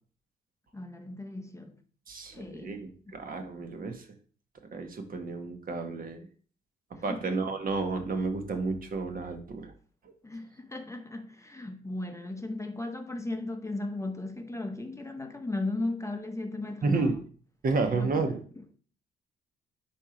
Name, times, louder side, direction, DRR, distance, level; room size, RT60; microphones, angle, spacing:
voice 1, 0.7-1.8 2.3-2.8 3.1-3.2 7.1-7.2 10.2-17.2 17.9-18.3, left 2 dB, 15° left, 0.8 m, -36 dB
voice 2, 2.1-4.0 4.7-6.3 7.0-9.7 10.0-10.1 16.8-17.1 17.6-18.3, right 3 dB, 45° right, 1.2 m, -31 dB
4.4 x 4.4 x 5.0 m
cardioid pair, 90°, 20 cm